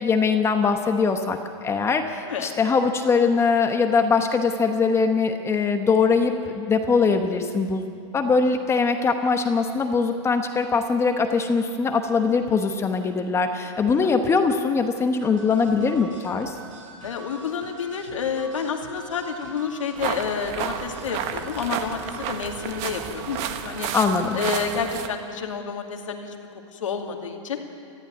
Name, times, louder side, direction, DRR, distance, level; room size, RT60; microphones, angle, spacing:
voice 1, 0.0-7.9 8.1-16.5 23.9-24.4, left 5 dB, 15° left, 6 dB, 1.0 m, -22 dB
sound 1, 15.2-24.8, right 3 dB, 80° right, 6.7 m, -44 dB
voice 2, 17.0-23.9 24.3-26.3 26.7-27.6, left 6 dB, 90° left, 3 dB, 2.4 m, -29 dB
sound 2, 20.0-25.1, right 9 dB, 40° right, 1.4 m, -31 dB
19.5 x 14.5 x 9.4 m, 2.4 s
hypercardioid pair, 135°, 16 cm